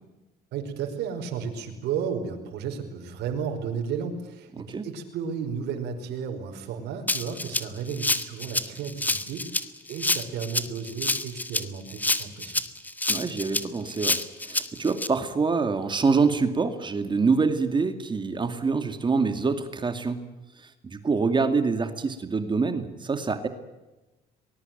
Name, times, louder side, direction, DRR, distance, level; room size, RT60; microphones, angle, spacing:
voice 1, 0.5-12.6, right 6 dB, 80° right, 3 dB, 5.1 m, -33 dB
voice 2, 4.6-4.9 13.1-20.2 20.6-23.5, right 4 dB, 25° right, 9 dB, 2.3 m, -26 dB
Rattle (instrument), 7.1-15.1, left 2 dB, 10° left, 1.7 m, -28 dB
24.0 x 20.5 x 9.1 m, 1.1 s
cardioid pair, 110°, 17 cm